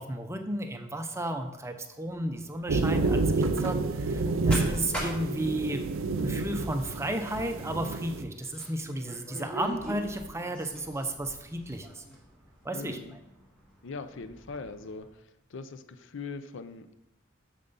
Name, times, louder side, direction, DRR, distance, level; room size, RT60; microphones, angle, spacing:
voice 1, 0.0-5.8 6.2-12.0 12.6-13.0, right 1 dB, 15° right, 6 dB, 0.6 m, -33 dB
sound 1, 2.0-15.1, right 1 dB, 5° left, 2.3 m, -44 dB
sound 2, 2.7-8.2, right 3 dB, 70° right, 0.5 m, -29 dB
voice 2, 12.7-13.2 13.8-15.1 15.5-17.0, left 4 dB, 65° left, 11 dB, 0.5 m, -40 dB
7.2 x 6.6 x 4.0 m, 0.88 s
head